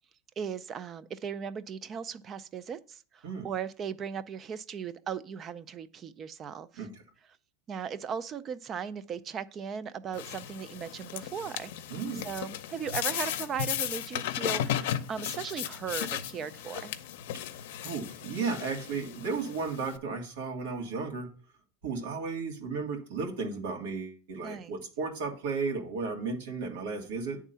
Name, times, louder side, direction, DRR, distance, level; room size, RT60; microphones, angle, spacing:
voice 1, 0.4-6.9 7.7-11.7 12.2-16.9 24.4-24.7, right 7 dB, 30° right, 0.5 m, -37 dB
sound 1, 10.1-20.0, left 11 dB, 80° left, 0.6 m, -35 dB
voice 2, 11.9-12.3 17.3-17.5 17.8-21.3 21.8-27.4, right 4 dB, 90° right, 2.0 m, -34 dB
9.0 x 3.6 x 5.6 m
supercardioid pair, 140°, 0 cm